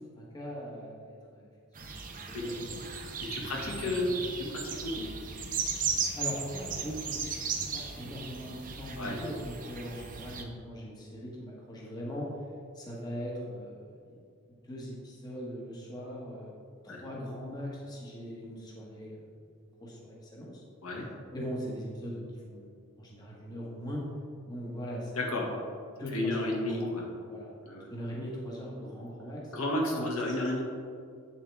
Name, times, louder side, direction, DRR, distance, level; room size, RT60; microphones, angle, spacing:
voice 1, 0.2-1.5 1.8-1.9 2.3-2.9 3.4-4.1 6.2-12.3 12.7-14.1 14.7-16.6 16.8-19.3 19.8-20.6 21.3-24.1 24.4-25.5 26.0-27.0 27.3-27.5 27.9-29.5 29.9-30.4, equal, 20° left, -4 dB, 1.4 m, -40 dB
sound 1, 1.7-10.4, right 5 dB, 40° right, 0.8 m, -36 dB
voice 2, 3.3-5.1 9.0-9.2 16.9-17.0 20.8-21.1 25.1-25.5 26.1-27.1 27.6-27.9 28.8-28.9 29.5-30.6, left 1 dB, 80° left, -2 dB, 1.8 m, -32 dB
8.8 x 7.4 x 3.5 m, 2.3 s
head